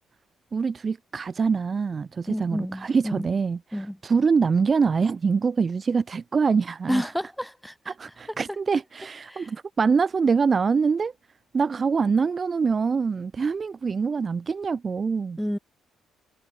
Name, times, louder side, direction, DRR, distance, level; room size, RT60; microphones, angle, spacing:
voice 1, 0.5-7.1 7.9-11.1 11.5-15.4, right 5 dB, 40° right, 0.7 m, -24 dB
voice 2, 2.3-3.3 3.7-4.0 6.9-7.9 9.3-9.5 15.4-15.6, equal, ahead, 2.4 m, -30 dB
cardioid pair, 90°, 0 cm